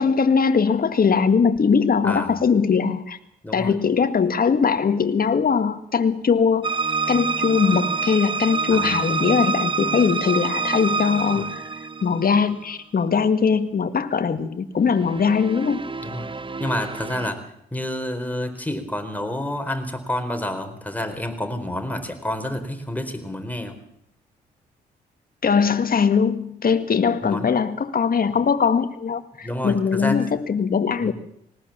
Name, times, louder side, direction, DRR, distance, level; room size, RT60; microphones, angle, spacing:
voice 1, 0.0-3.2 3.5-6.7 7.1-15.9 25.4-31.1, left 6 dB, 45° left, 10 dB, 1.8 m, -21 dB
voice 2, 2.0-2.4 3.4-3.7 8.7-9.0 11.4-11.5 16.0-16.3 16.6-17.4 17.7-23.8 27.2-27.5 29.4-30.2 31.0-31.1, left 1 dB, 5° left, 6 dB, 4.1 m, -29 dB
sound 1, 6.6-12.5 14.9-17.3, right 4 dB, 25° right, 0.9 m, -27 dB
19.0 x 18.5 x 7.3 m, 0.76 s
hypercardioid pair, 45°, 21 cm